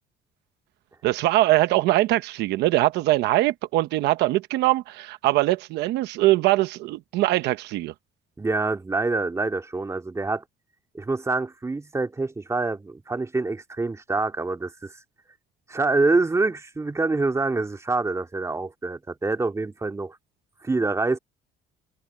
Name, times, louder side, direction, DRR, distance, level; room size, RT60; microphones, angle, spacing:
voice 1, 1.0-7.9, right 17 dB, 85° right, 1.0 m, -22 dB
voice 2, 8.4-10.4 10.9-14.9 15.7-20.2 20.6-21.2, right 3 dB, 15° right, 2.4 m, -26 dB
cardioid pair, 110°, 17 cm